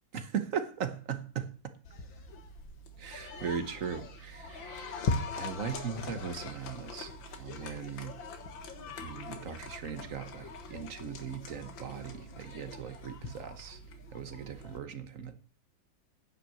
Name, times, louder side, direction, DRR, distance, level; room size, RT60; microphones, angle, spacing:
voice 1, 0.1-1.5 3.0-4.9 5.4-8.1 9.0-13.8 14.1-15.4, right 7 dB, 50° right, 1.2 m, -38 dB
sound 1, 1.9-14.8, left 4 dB, 70° left, 2.1 m, -41 dB
10.0 x 5.8 x 7.7 m
omnidirectional pair, 2.2 m